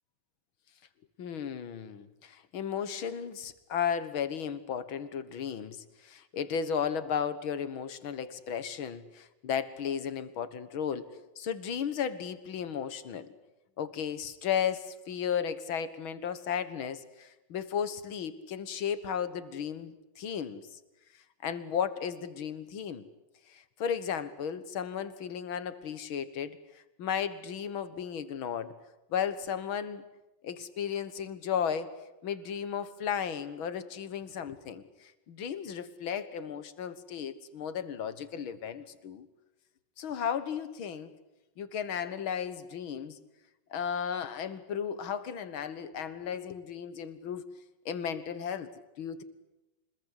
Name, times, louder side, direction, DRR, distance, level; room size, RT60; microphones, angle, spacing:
voice 1, 1.2-11.1 11.4-13.3 13.8-20.7 21.4-23.1 23.5-28.7 29.1-30.1 30.4-31.9 32.2-39.3 40.0-41.1 41.6-43.2 43.7-47.5 47.9-48.7 49.0-49.2, left 8 dB, 85° left, 13 dB, 2.3 m, -34 dB
25.5 x 21.0 x 9.9 m, 0.96 s
omnidirectional pair, 2.2 m